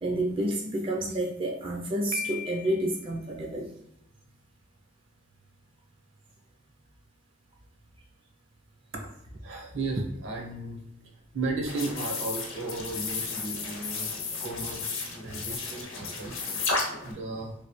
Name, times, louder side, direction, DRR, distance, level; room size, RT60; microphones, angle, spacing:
voice 1, 0.0-3.7 15.2-15.4 17.0-17.1, right 1 dB, 25° right, -1 dB, 0.4 m, -30 dB
Piano, 2.1-3.1, left 7 dB, 50° left, 0.4 m, -37 dB
voice 2, 8.9-10.8 11.3-14.1 14.4-17.5, right 2 dB, 70° right, 0 dB, 0.8 m, -35 dB
sound 1, 11.6-17.1, left 4 dB, 75° left, 0.8 m, -33 dB
3.1 x 2.6 x 3.0 m, 0.80 s
head